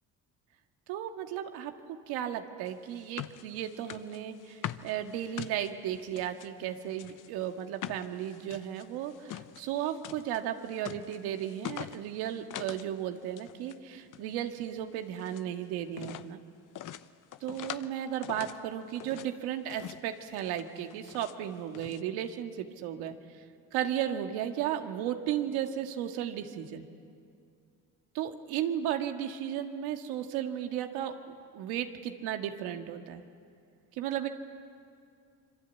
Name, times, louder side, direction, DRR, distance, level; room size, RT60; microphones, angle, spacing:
voice 1, 0.9-1.7 2.1-16.4 17.4-23.2 23.7-26.8 28.1-31.1 31.5-33.2 33.9-34.3, right 10 dB, 85° right, 5 dB, 1.9 m, -34 dB
sound 1, 2.7-6.5 6.9-12.9 13.2-13.8 14.1-15.5 15.9-16.3 16.8-17.9 18.2-19.3 19.7-20.1 20.3-21.4 21.7-22.0, left 12 dB, 55° left, 1.0 m, -44 dB
26.0 x 24.5 x 8.3 m, 2.4 s
supercardioid pair, 90°, 37 cm